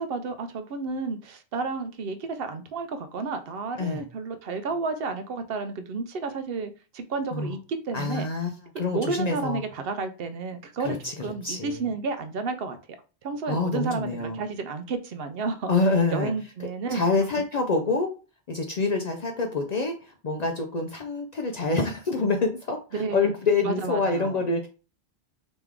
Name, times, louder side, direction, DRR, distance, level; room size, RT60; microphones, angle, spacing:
voice 1, 0.0-8.3 8.9-12.8 13.2-15.7 16.1-17.1 22.9-23.3 23.6-24.4, right 4 dB, 65° right, 0.7 m, -31 dB
voice 2, 7.9-9.6 10.8-11.8 13.5-14.4 15.7-16.3 16.9-18.1 18.5-24.7, left 3 dB, 55° left, 0.5 m, -26 dB
3.4 x 3.0 x 3.5 m
omnidirectional pair, 1.1 m